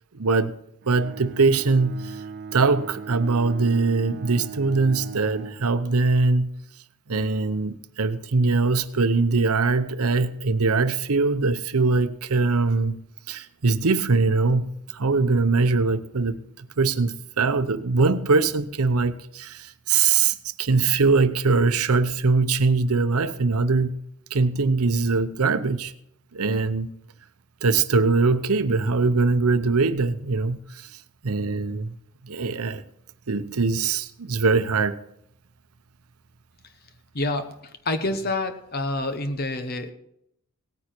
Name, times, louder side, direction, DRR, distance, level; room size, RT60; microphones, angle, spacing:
voice 1, 0.1-0.5 0.9-2.2 2.5-6.5 7.1-13.0 13.3-23.9 24.3-25.9 26.3-26.9 27.6-30.9 31.2-31.9 32.2-32.8 33.3-35.0, right 4 dB, 80° right, 0.8 m, -22 dB
Bowed string instrument, 0.8-5.7, right 6 dB, 50° right, 0.5 m, -38 dB
voice 2, 37.1-39.9, left 2 dB, 45° left, 0.9 m, -28 dB
17.5 x 9.6 x 4.5 m
head